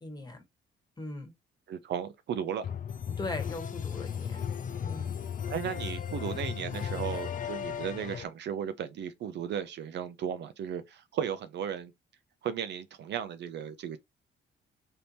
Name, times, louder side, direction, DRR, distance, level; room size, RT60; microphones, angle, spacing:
voice 1, 0.0-0.4 1.0-1.3 3.2-4.4 4.8-5.2, left 2 dB, 20° left, 1.3 m, -39 dB
voice 2, 1.7-2.7 5.5-11.9 12.4-14.0, right 8 dB, 60° right, 0.5 m, -35 dB
sound 1, 2.6-8.2, left 8 dB, 40° left, 0.5 m, -35 dB
3.5 x 2.8 x 2.7 m
cardioid pair, 90°, 20 cm